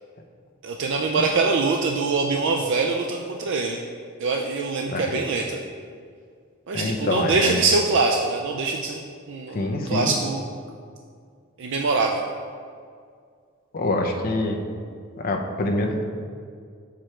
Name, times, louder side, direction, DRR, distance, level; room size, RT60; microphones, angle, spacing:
voice 1, 0.6-3.8 4.2-5.6 6.7-9.0 9.3-10.4 11.6-12.2, right 3 dB, 60° right, 1 dB, 0.4 m, -23 dB
voice 2, 6.7-7.6 9.5-10.1 13.7-14.6 15.2-16.0, left 2 dB, 45° left, 2 dB, 0.6 m, -25 dB
5.9 x 4.9 x 4.4 m, 2.2 s
head